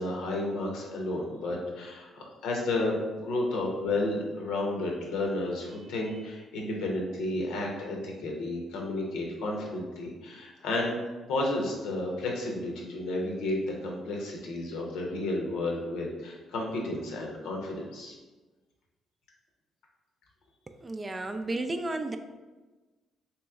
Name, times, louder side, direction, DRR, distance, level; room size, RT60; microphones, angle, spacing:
voice 1, 0.0-11.0 11.3-18.1, left 2 dB, 90° left, -1 dB, 0.8 m, -32 dB
voice 2, 20.8-22.2, right 2 dB, 25° right, 7 dB, 0.3 m, -32 dB
3.1 x 3.0 x 3.5 m, 1.2 s
cardioid pair, 90°, 0 cm